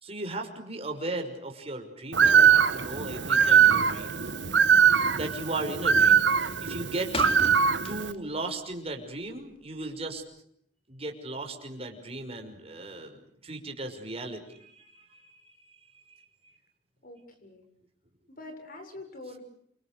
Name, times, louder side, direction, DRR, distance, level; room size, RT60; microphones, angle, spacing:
voice 1, 0.0-4.2 5.1-6.2 6.6-7.4 7.8-10.2 10.9-16.5, right 2 dB, 35° right, 4 dB, 5.8 m, -37 dB
Bird, 2.1-8.1, right 7 dB, 85° right, 1.4 m, -21 dB
sound 1, 6.6-8.4 8.7-10.2, left 2 dB, 35° left, 3.0 m, -38 dB
voice 2, 17.0-17.7 18.3-19.4, left 2 dB, 55° left, 6 dB, 7.2 m, -45 dB
29.0 x 26.0 x 6.7 m, 0.69 s
head